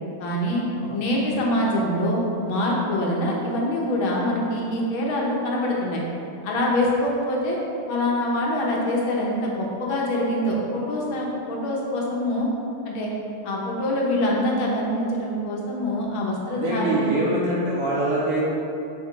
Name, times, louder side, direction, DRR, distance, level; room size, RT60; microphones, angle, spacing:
voice 1, 0.2-0.6 0.9-6.0 6.4-7.6 7.9-12.5 12.9-13.1 13.4-17.1, left 1 dB, 70° left, -3 dB, 1.7 m, -24 dB
voice 2, 16.5-18.4, right 1 dB, 80° right, -8 dB, 2.4 m, -24 dB
5.9 x 4.7 x 3.7 m, 2.8 s
omnidirectional pair, 2.4 m